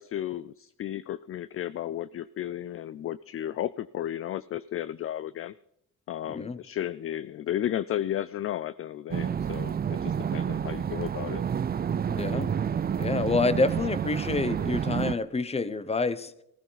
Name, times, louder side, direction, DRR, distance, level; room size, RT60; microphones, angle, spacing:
voice 1, 0.0-5.5 6.1-11.4, left 11 dB, 40° left, 16 dB, 0.4 m, -33 dB
voice 2, 6.3-6.6 12.1-12.5 13.0-16.3, left 3 dB, 15° left, 15 dB, 0.9 m, -28 dB
sound 1, 9.1-15.2, right 8 dB, 25° right, 0.5 m, -29 dB
15.5 x 15.0 x 4.0 m, 0.78 s
cardioid pair, 110°, 36 cm